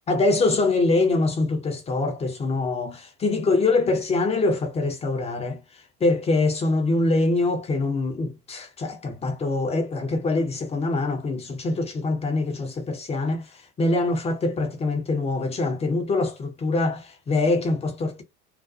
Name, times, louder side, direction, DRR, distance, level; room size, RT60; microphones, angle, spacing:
voice 1, 0.1-5.6 6.0-18.2, left 2 dB, 15° left, 0.5 m, -24 dB
2.4 x 2.2 x 2.4 m
figure-of-eight pair, 80°, 49 cm